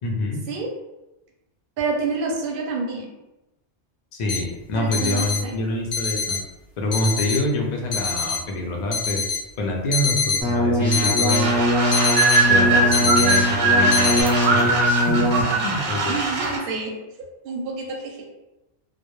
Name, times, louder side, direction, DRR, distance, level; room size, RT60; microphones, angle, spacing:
voice 1, 0.0-0.4 4.1-6.4 6.8-9.2 9.6-11.6 12.5-16.2, left 1 dB, 60° left, 0 dB, 0.4 m, -26 dB
voice 2, 1.8-3.1 4.7-5.6 16.1-16.9 17.4-18.3, right 4 dB, 60° right, 0 dB, 0.7 m, -28 dB
sound 1, 4.3-4.4 4.9-5.4 5.9-6.4 6.9-7.4 7.9-8.4 8.9-9.4 9.9-10.4 10.9-11.4 11.9-12.4 12.9-13.4 13.9-14.2, left 5 dB, 90° left, 0.9 m, -23 dB
sound 2, 10.4-15.4, equal, 10° right, 0.5 m, -22 dB
sound 3, 11.4-16.6, right 3 dB, 85° right, 0.9 m, -21 dB
2.1 x 2.0 x 2.9 m, 0.97 s
omnidirectional pair, 1.2 m